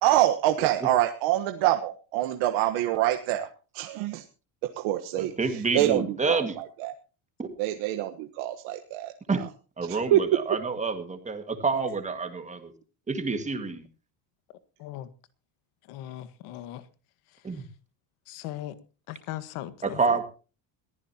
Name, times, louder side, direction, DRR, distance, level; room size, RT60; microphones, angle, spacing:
voice 1, 0.0-3.5 3.7-4.2 4.7-6.9 7.6-9.1 9.9-10.2, right 13 dB, 75° right, 1.4 m, -26 dB
voice 2, 5.2-6.6 7.4-7.5 9.3-9.4 9.8-12.7 13.1-13.8 17.4-17.6 19.8-20.2, right 4 dB, 15° right, 1.9 m, -28 dB
voice 3, 15.9-16.8 18.3-18.7 19.1-20.0, left 13 dB, 80° left, 1.8 m, -38 dB
21.5 x 15.0 x 2.9 m
cardioid pair, 175°, 49 cm